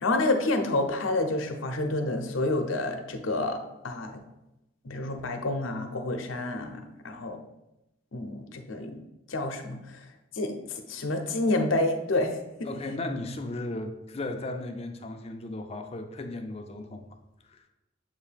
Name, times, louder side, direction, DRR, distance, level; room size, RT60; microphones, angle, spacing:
voice 1, 0.0-4.2 4.8-7.4 8.1-9.0 9.3-10.0 10.3-12.7, left 2 dB, 80° left, 5 dB, 0.8 m, -29 dB
voice 2, 12.7-17.0 17.5-17.6, left 2 dB, 30° left, 5 dB, 0.5 m, -35 dB
7.5 x 2.7 x 5.0 m, 0.92 s
head